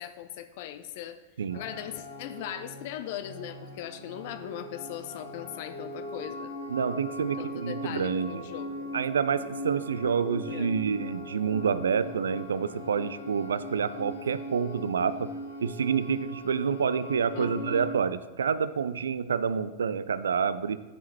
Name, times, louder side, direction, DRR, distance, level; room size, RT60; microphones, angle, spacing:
voice 1, 0.0-1.2 1.5-6.5 7.4-8.9 10.5-10.7 17.3-17.8, left 11 dB, 50° left, 11 dB, 0.4 m, -39 dB
sound 1, 1.5-18.0, equal, 75° left, 0.9 m, -39 dB
voice 2, 6.7-8.4 8.9-15.3 15.6-20.8, right 6 dB, 70° right, 15 dB, 0.3 m, -28 dB
12.5 x 5.6 x 2.9 m, 1.2 s
figure-of-eight pair, 90°, 0 cm